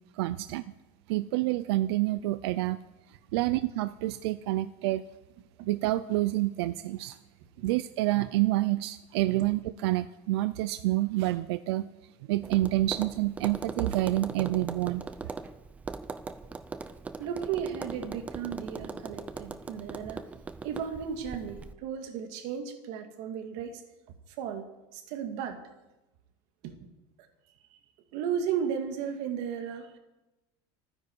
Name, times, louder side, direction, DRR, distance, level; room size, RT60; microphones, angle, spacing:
voice 1, 0.1-0.6 1.1-2.8 3.1-5.1 5.7-7.2 7.6-11.9 12.3-15.0, right 17 dB, 85° right, 13 dB, 0.5 m, -28 dB
Tap, 12.4-21.7, right 4 dB, 10° right, 0.5 m, -40 dB
voice 2, 17.2-20.2 20.6-23.8 24.4-24.7 24.9-25.6 26.6-26.8 28.1-30.0, right 8 dB, 55° right, 6 dB, 2.0 m, -34 dB
26.0 x 9.9 x 4.7 m, 1.0 s
cardioid pair, 180°, 13 cm